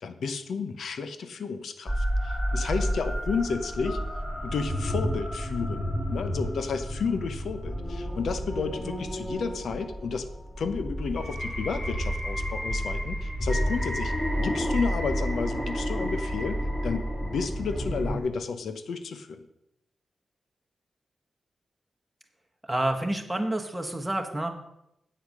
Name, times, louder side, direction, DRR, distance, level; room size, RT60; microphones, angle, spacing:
voice 1, 0.0-4.0 4.4-10.3 10.6-19.4, left 5 dB, 80° left, 10 dB, 0.9 m, -32 dB
sound 1, 1.9-18.2, equal, 15° left, 3.2 m, -30 dB
voice 2, 22.6-24.5, right 1 dB, 5° right, 3 dB, 1.4 m, -28 dB
8.3 x 8.0 x 6.5 m, 0.82 s
wide cardioid pair, 120°, 0 cm